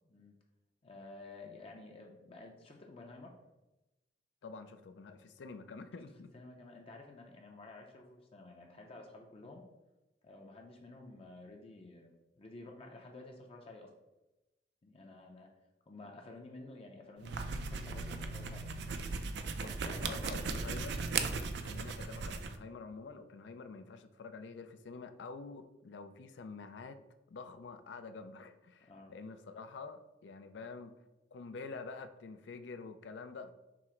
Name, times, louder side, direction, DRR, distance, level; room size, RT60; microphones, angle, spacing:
voice 1, 0.0-0.4 0.8-3.4 6.1-9.6 10.2-13.9 14.8-15.5 15.9-18.7 19.7-20.7 21.2-21.4 28.8-29.1, left 2 dB, 35° left, 1 dB, 0.5 m, -52 dB
voice 2, 4.4-6.3 19.5-21.0 21.6-27.0 27.3-30.9 31.3-33.5, left 4 dB, 85° left, 9 dB, 0.4 m, -47 dB
sound 1, 17.2-22.6, right 4 dB, 65° right, 0.4 m, -37 dB
5.9 x 2.0 x 4.4 m, 1.0 s
head